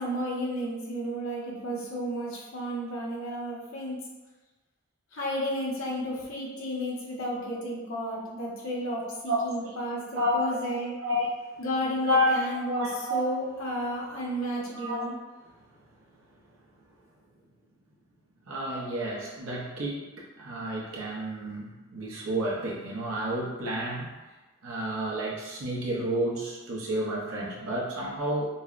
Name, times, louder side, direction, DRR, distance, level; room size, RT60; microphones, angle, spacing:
voice 1, 0.0-4.0 5.1-10.9 11.6-15.1, equal, 75° left, -5 dB, 1.0 m, -32 dB
voice 2, 9.3-9.7 10.1-10.6 11.0-11.3 12.0-12.5 12.8-13.3 14.7-15.0 18.5-24.1 24.6-28.4, equal, 90° right, -4 dB, 0.8 m, -30 dB
5.4 x 2.2 x 2.4 m, 1.2 s
head